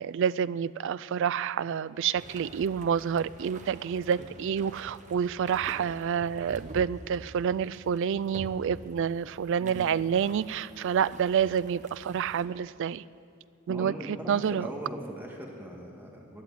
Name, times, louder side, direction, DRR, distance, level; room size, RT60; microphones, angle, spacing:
voice 1, 0.0-13.0 13.7-14.7, right 7 dB, 55° right, 18 dB, 0.3 m, -28 dB
sound 1, 2.1-12.5, right 2 dB, 35° right, 1.0 m, -47 dB
voice 2, 9.6-9.9 13.7-16.4, equal, 10° right, -1 dB, 1.8 m, -40 dB
14.0 x 9.6 x 9.3 m, 2.5 s
head